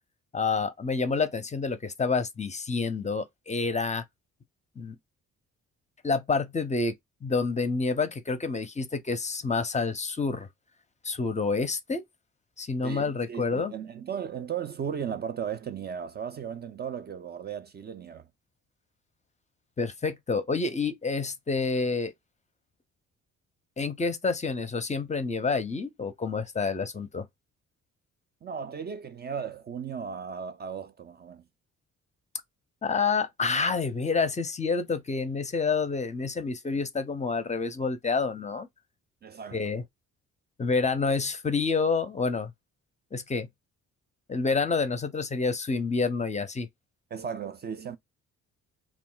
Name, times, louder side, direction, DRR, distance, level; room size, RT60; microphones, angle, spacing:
voice 1, 0.3-4.0 4.8-5.0 6.0-6.9 7.2-10.5 11.0-12.0 12.6-13.7 19.8-22.1 23.8-27.2 32.8-38.7 39.5-39.8 40.6-42.5 43.1-43.5 44.3-46.7, left 4 dB, 25° left, 0.5 m, -28 dB
voice 2, 12.8-18.3 28.4-31.4 39.2-39.7 47.1-48.0, right 7 dB, 35° right, 0.4 m, -36 dB
2.3 x 2.1 x 3.7 m
cardioid pair, 90°, 30 cm